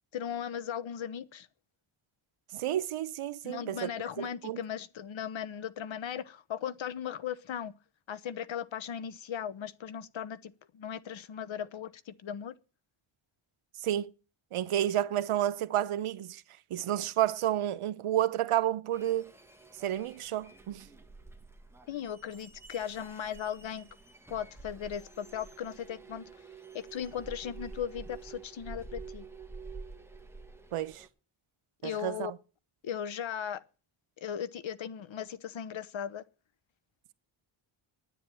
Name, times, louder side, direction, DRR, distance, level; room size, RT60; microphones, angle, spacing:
voice 1, 0.1-1.5 3.4-7.7 8.1-12.5 21.9-23.9 24.3-26.2 26.7-29.2 31.8-32.3 32.8-33.6 34.2-36.2, left 9 dB, 65° left, 1.0 m, -37 dB
voice 2, 2.5-3.9 4.2-4.6 13.8-14.1 14.5-16.4 16.7-19.3 19.8-20.9 30.7-31.0 31.8-32.4, right 12 dB, 90° right, 0.9 m, -30 dB
sound 1, 18.9-31.1, right 4 dB, 5° right, 1.6 m, -49 dB
10.0 x 9.3 x 9.0 m
wide cardioid pair, 125°, 49 cm